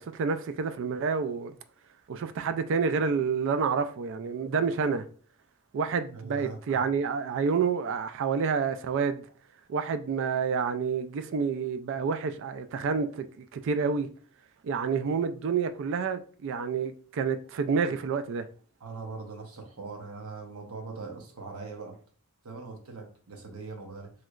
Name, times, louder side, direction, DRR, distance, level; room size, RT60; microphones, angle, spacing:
voice 1, 0.0-1.6 2.1-5.0 5.7-9.3 9.7-14.1 14.6-18.4, right 5 dB, 60° right, 0.3 m, -29 dB
voice 2, 6.1-6.9 18.8-22.0 22.4-24.1, right 4 dB, 85° right, 0.8 m, -41 dB
3.1 x 2.9 x 2.4 m
head